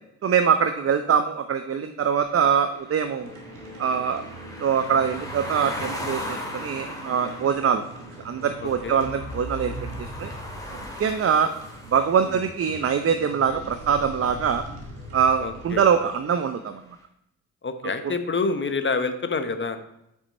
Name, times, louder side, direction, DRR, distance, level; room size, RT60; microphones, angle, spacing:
voice 1, 0.2-3.3 3.8-4.2 4.6-7.8 8.2-9.7 10.0-10.3 11.0-11.5 11.9-14.6 15.1-16.8, right 7 dB, 35° right, 9 dB, 0.6 m, -23 dB
sound 1, 2.2-14.2, left 1 dB, 10° left, 2.5 m, -39 dB
sound 2, 3.2-16.3, right 1 dB, 90° right, 1.4 m, -41 dB
voice 2, 8.6-9.0 12.2-12.4 15.4-15.8 17.6-19.8, left 4 dB, 30° left, 9 dB, 1.0 m, -27 dB
8.2 x 6.1 x 4.2 m, 0.81 s
hypercardioid pair, 40°, 41 cm